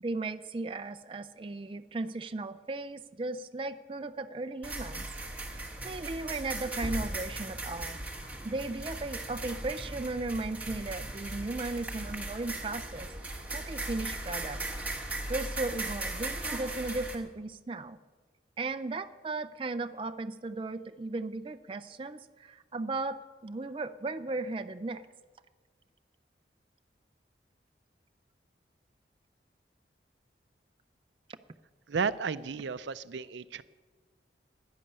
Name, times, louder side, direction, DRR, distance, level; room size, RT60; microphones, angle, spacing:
voice 1, 0.0-5.1 5.8-8.0 8.4-13.1 13.5-14.6 15.3-18.0 18.6-25.0, right 2 dB, 30° right, 10 dB, 0.4 m, -36 dB
sound 1, 4.6-17.1, right 2 dB, 10° right, 1.3 m, -38 dB
voice 2, 31.9-33.6, right 5 dB, 85° right, 15 dB, 0.5 m, -33 dB
11.0 x 10.5 x 8.7 m, 1.4 s
head